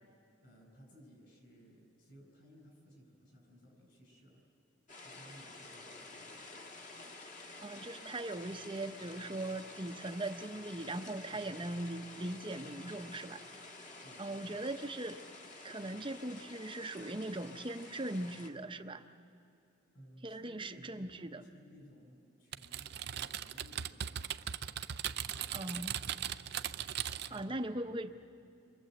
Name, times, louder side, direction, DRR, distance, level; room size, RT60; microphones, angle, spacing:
voice 1, 0.4-4.4 5.0-6.4 11.3-11.5 14.0-14.6 19.9-24.3 25.1-26.0 27.2-28.0, equal, 55° left, 2 dB, 6.8 m, -59 dB
sound 1, 4.9-18.5, left 2 dB, 40° left, 1.8 m, -50 dB
voice 2, 7.6-13.4 14.2-15.2 15.6-19.0 20.2-21.4 25.5-25.9 27.3-28.1, right 1 dB, 25° right, 8 dB, 0.8 m, -40 dB
Typing, 22.5-27.4, right 9 dB, 55° right, 0.6 m, -39 dB
29.5 x 24.5 x 7.9 m, 2.7 s
head